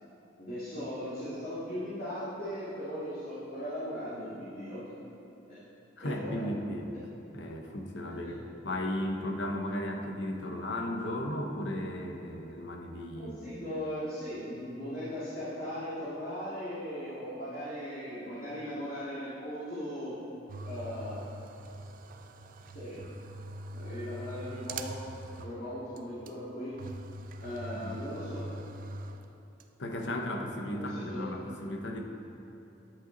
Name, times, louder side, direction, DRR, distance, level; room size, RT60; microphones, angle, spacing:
voice 1, 0.4-4.8 5.5-5.6 6.0-6.5 8.0-8.3 13.1-20.2 20.6-21.2 22.7-23.1 23.7-25.1 25.4-26.8 27.4-28.4 30.7-31.3, equal, 50° left, -12 dB, 2.3 m, -38 dB
voice 2, 6.0-6.9 7.3-13.5 27.7-28.0 29.8-32.0, left 1 dB, 70° left, 2 dB, 1.0 m, -35 dB
sound 1, 20.5-25.7 26.0-26.1 26.3-26.4 26.8-29.6, right 1 dB, 45° right, 0.5 m, -42 dB
11.0 x 8.1 x 4.0 m, 2.9 s
head